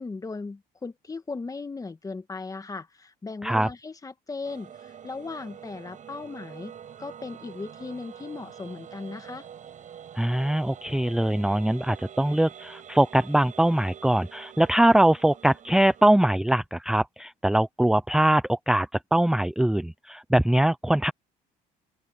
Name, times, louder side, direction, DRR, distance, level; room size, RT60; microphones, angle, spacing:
voice 1, 0.0-6.7 7.0-9.5, left 3 dB, 20° left, 1.6 m, -37 dB
sound 1, 4.4-16.0, right 8 dB, 50° right, 6.2 m, -46 dB
voice 2, 10.1-21.1, right 1 dB, 5° right, 0.7 m, -22 dB
open air
cardioid pair, 110°, 17 cm